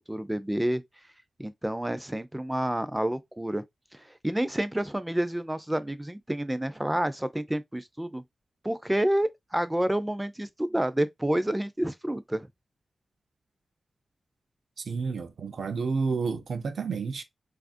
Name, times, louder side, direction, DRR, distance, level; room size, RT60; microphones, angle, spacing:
voice 1, 0.1-0.8 1.4-3.6 4.0-8.2 8.6-12.5, right 1 dB, 10° right, 0.3 m, -29 dB
voice 2, 14.9-17.2, right 4 dB, 70° right, 0.5 m, -30 dB
4.0 x 2.4 x 2.4 m
wide cardioid pair, 165°, 0 cm